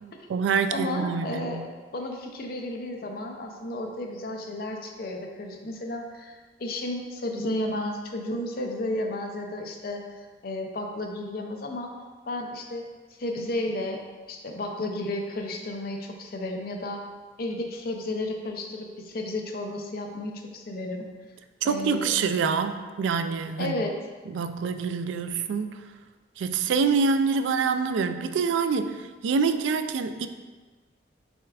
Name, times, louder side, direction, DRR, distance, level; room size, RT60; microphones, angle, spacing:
voice 1, 0.0-1.7 21.6-23.7 24.3-25.8 26.4-30.3, right 5 dB, 80° right, 9 dB, 0.3 m, -26 dB
voice 2, 0.7-11.9 12.3-12.8 13.2-14.0 14.3-17.0 17.4-21.1 21.6-22.1 23.6-23.9, left 1 dB, 50° left, 2 dB, 0.5 m, -33 dB
6.2 x 2.3 x 3.4 m, 1.3 s
head